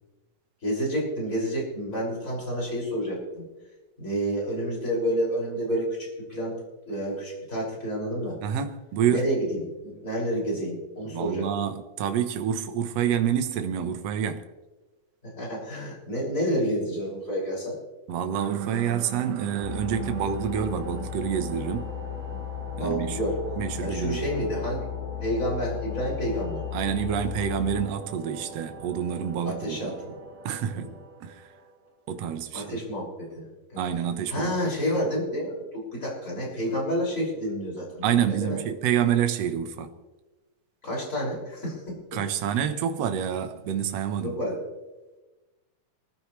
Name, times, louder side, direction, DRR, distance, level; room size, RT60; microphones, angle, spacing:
voice 1, 0.6-3.4 4.0-6.6 6.9-8.4 9.1-11.5 15.2-17.8 22.7-23.4 23.8-24.9 25.2-26.7 29.4-30.1 30.7-30.9 32.5-33.8 34.3-38.6 40.8-42.2 44.2-44.6, equal, 20° left, 6.4 m, -29 dB
voice 2, 8.4-9.3 11.1-14.4 18.1-21.9 22.7-23.2 23.6-24.2 26.7-29.9 30.5-30.9 31.2-31.5 32.1-32.8 33.8-34.5 38.0-39.9 42.1-44.4, right 9 dB, 65° right, 1.8 m, -27 dB
sound 1, 18.3-24.3, right 12 dB, 85° right, 1.5 m, -41 dB
sound 2, 18.6-32.1, right 3 dB, 25° right, 2.1 m, -43 dB
sound 3, 19.6-27.9, left 14 dB, 75° left, 2.2 m, -35 dB
24.0 x 15.0 x 3.3 m
omnidirectional pair, 4.0 m